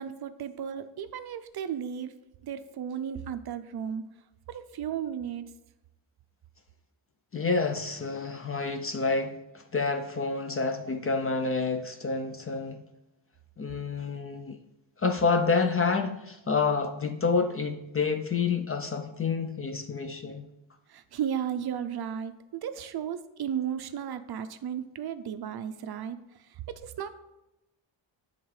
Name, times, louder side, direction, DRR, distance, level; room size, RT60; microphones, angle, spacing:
voice 1, 0.0-2.1 2.4-4.0 4.5-5.4 20.9-27.1, right 8 dB, 55° right, 11 dB, 0.5 m, -34 dB
voice 2, 7.3-12.8 13.6-14.6 15.0-20.4, left 4 dB, 30° left, 6 dB, 0.4 m, -28 dB
9.1 x 3.6 x 4.7 m, 0.95 s
wide cardioid pair, 170°, 48 cm